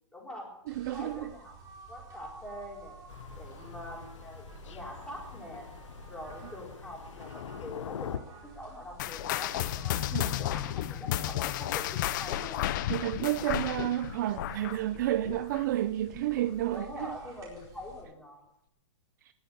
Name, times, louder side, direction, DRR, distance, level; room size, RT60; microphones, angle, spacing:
voice 1, 0.1-1.5 1.9-3.0 3.4-5.7 6.1-12.9 16.7-18.4, left 1 dB, 5° left, 4.3 m, -44 dB
sound 1, 0.7-18.0, right 4 dB, 20° right, 4.6 m, -52 dB
voice 2, 0.7-1.3 10.1-10.3 12.9-17.1, right 14 dB, 40° right, 0.4 m, -31 dB
Thunder, 3.1-8.2, left 8 dB, 75° left, 0.9 m, -43 dB
sound 2, 9.0-15.9 16.1-16.4 17.0-17.1 17.9-18.0, left 13 dB, 40° left, 0.6 m, -33 dB
19.5 x 7.0 x 8.3 m
hypercardioid pair, 155°, 16 cm